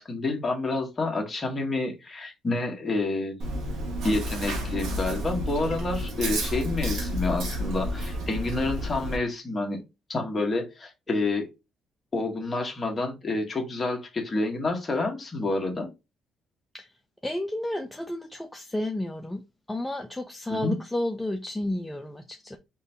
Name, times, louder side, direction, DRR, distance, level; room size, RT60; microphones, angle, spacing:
voice 1, 0.0-3.4 4.0-9.8 10.1-11.5 12.1-15.9 20.5-20.8, left 2 dB, 30° left, 1.3 m, -28 dB
Chewing mastication, 3.4-9.2, equal, 85° right, 1.5 m, -31 dB
voice 2, 17.2-19.4 19.7-22.6, left 1 dB, 10° left, 0.4 m, -32 dB
3.8 x 2.7 x 3.3 m
cardioid pair, 100°, 0 cm